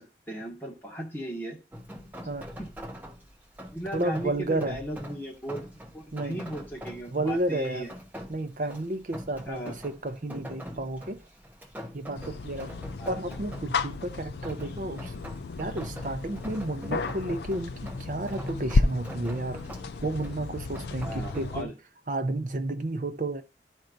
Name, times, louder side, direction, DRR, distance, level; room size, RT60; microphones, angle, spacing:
voice 1, 0.0-1.6 2.6-2.7 3.7-7.9 9.4-9.8 13.0-13.2 21.0-21.7, equal, 15° left, 1.7 m, -37 dB
Rain, 1.7-21.5, equal, 10° right, 1.0 m, -44 dB
voice 2, 3.9-4.8 6.1-6.4 7.1-7.9 8.3-11.2 11.9-15.1 15.6-19.6 20.0-21.7 22.1-23.4, right 2 dB, 45° right, 0.6 m, -32 dB
sound 1, 12.1-21.6, left 3 dB, 70° left, 0.5 m, -32 dB
12.0 x 4.5 x 2.6 m
head